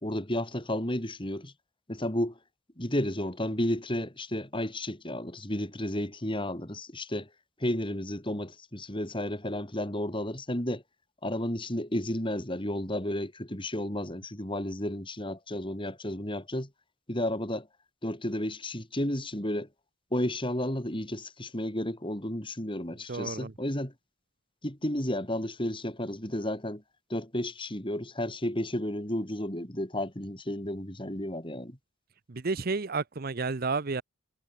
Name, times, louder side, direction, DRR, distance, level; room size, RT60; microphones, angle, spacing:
voice 1, 0.0-1.5 1.9-2.4 2.8-7.3 7.6-10.8 11.2-16.7 17.1-17.7 18.0-19.7 20.1-23.9 24.6-26.8 27.1-31.8, left 1 dB, 25° left, 3.6 m, -32 dB
voice 2, 23.1-23.5 32.3-34.0, right 4 dB, 45° right, 0.7 m, -31 dB
head